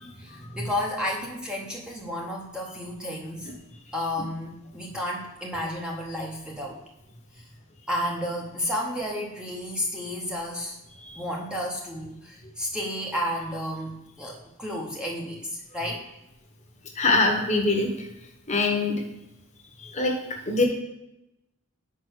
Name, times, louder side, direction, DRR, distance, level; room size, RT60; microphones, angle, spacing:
voice 1, 0.2-3.5 3.9-6.8 7.3-7.5 7.9-10.8 11.1-16.1, left 1 dB, 5° right, -2 dB, 0.8 m, -32 dB
voice 2, 17.0-17.9 18.5-19.0 19.8-20.1 20.5-20.7, left 3 dB, 30° left, 2 dB, 1.0 m, -23 dB
5.3 x 4.7 x 6.3 m, 0.90 s
head